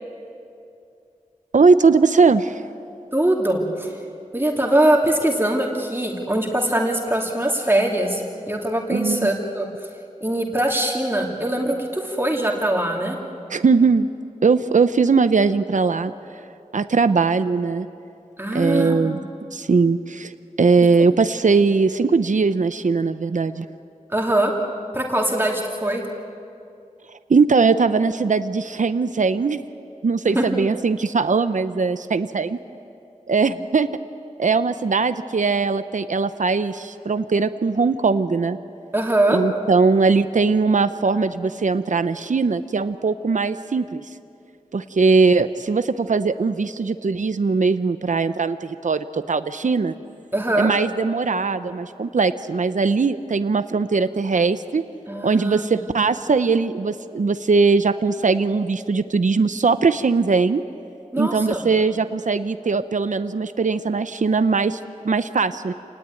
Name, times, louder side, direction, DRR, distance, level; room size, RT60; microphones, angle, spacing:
voice 1, 1.5-2.6 8.9-9.3 13.5-14.1 14.4-16.1 16.7-17.9 18.5-20.3 20.6-23.7 27.1-29.6 30.0-32.6 33.3-33.9 34.4-38.6 39.3-44.0 44.7-49.9 50.6-54.8 55.2-60.6 61.2-64.8 65.0-65.7, right 4 dB, 70° right, 11 dB, 0.7 m, -20 dB
voice 2, 3.1-3.9 4.3-9.7 10.2-13.2 18.4-19.1 24.1-24.5 24.9-26.0 30.3-30.5 38.9-39.4 50.3-50.7 55.1-55.7 61.1-61.6, right 1 dB, 15° right, -1 dB, 2.6 m, -22 dB
28.0 x 19.5 x 9.2 m, 2.6 s
wide cardioid pair, 75°, 13 cm